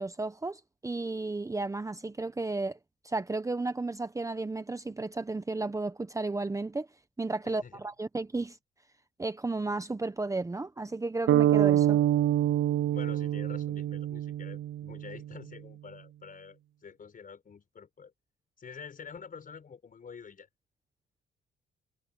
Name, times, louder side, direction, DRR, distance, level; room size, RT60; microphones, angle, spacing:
voice 1, 0.0-2.8 3.0-6.9 7.2-8.6 9.2-12.0, right 3 dB, 15° right, 1.0 m, -33 dB
voice 2, 7.4-7.8 12.9-18.1 18.6-20.5, left 6 dB, 45° left, 6.2 m, -47 dB
sound 1, 11.3-15.2, right 12 dB, 70° right, 0.7 m, -26 dB
cardioid pair, 90°, 20 cm